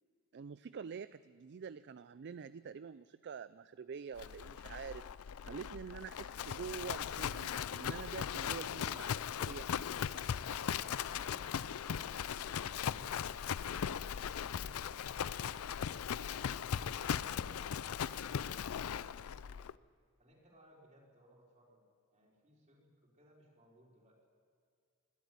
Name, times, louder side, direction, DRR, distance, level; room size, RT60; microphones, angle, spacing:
voice 1, 0.3-5.1 5.4-9.9, right 6 dB, 55° right, 15 dB, 0.4 m, -46 dB
Livestock farm animals working animals, 4.2-19.7, left 8 dB, 90° left, 0.4 m, -39 dB
voice 2, 11.0-12.9 13.2-13.9 14.4-16.0 16.5-17.8 18.0-19.7 20.2-21.8 22.1-24.2, equal, 35° right, -2 dB, 4.7 m, -64 dB
20.0 x 13.5 x 9.4 m, 2.2 s
head